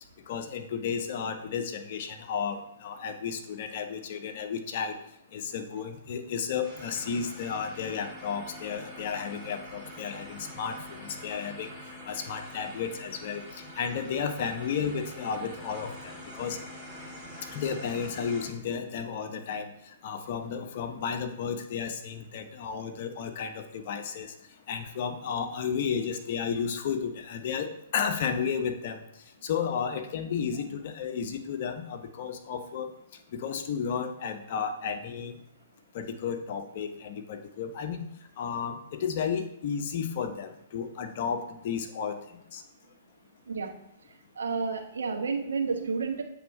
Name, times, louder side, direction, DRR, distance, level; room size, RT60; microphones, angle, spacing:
voice 1, 0.3-5.0 5.3-11.7 12.1-13.4 13.8-16.6 17.5-19.7 20.0-24.3 24.7-29.0 29.4-32.9 33.3-35.3 35.9-38.1 38.4-42.2 42.5-42.6, left 6 dB, 55° left, 6 dB, 0.8 m, -33 dB
sound 1, 6.6-18.5, equal, ahead, 2.3 m, -45 dB
voice 2, 44.4-46.2, right 5 dB, 75° right, 3 dB, 1.0 m, -30 dB
7.9 x 3.6 x 4.7 m, 0.76 s
hypercardioid pair, 125°, 0 cm